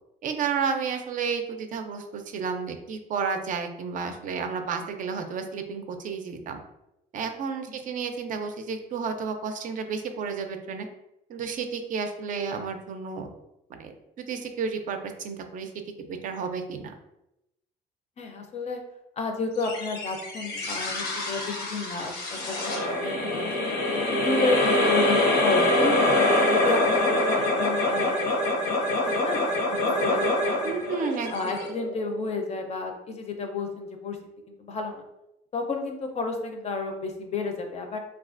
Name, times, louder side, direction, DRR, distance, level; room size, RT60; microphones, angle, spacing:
voice 1, 0.2-6.6 7.1-10.9 11.3-13.3 13.7-15.7 16.0-16.9 30.6-31.3, right 5 dB, 50° right, 6 dB, 0.4 m, -31 dB
voice 2, 18.2-18.8 19.2-23.8 24.1-26.2 26.5-28.2 29.0-30.9 31.3-34.2 34.5-35.0 35.5-38.0, left 3 dB, 40° left, 4 dB, 0.5 m, -32 dB
sound 1, 19.6-32.2, left 1 dB, 70° left, 0.8 m, -25 dB
3.1 x 2.4 x 2.4 m, 0.88 s
cardioid pair, 110°, 17 cm